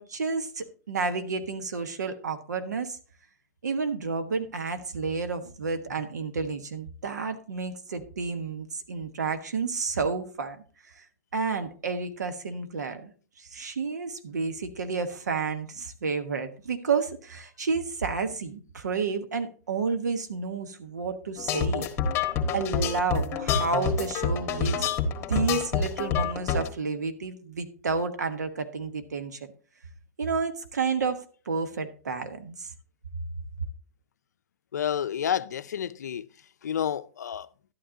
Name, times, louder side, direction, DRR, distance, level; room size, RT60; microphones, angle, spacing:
voice 1, 0.0-3.0 3.6-10.6 11.0-11.1 11.3-13.1 13.4-21.9 22.5-29.5 30.2-32.7, right 4 dB, 85° right, 1.2 m, -31 dB
sound 1, 21.4-26.7, left 6 dB, 30° left, 1.6 m, -27 dB
voice 2, 34.7-36.3 36.6-37.5, left 9 dB, 80° left, 0.5 m, -29 dB
12.0 x 9.0 x 2.7 m
hypercardioid pair, 130°, 9 cm